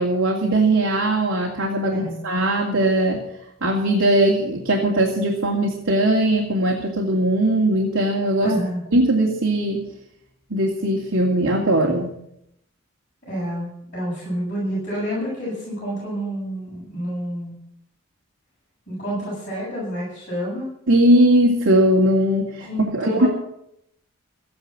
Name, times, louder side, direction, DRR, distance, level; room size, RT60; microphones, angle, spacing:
voice 1, 0.0-3.2 3.6-8.5 8.9-9.8 10.5-12.1 20.9-23.3, right 1 dB, 80° right, -1 dB, 2.5 m, -19 dB
voice 2, 8.4-8.8 13.2-17.6 18.9-20.7 22.6-23.3, equal, 35° left, -8 dB, 7.9 m, -28 dB
14.5 x 10.5 x 7.7 m, 0.78 s
head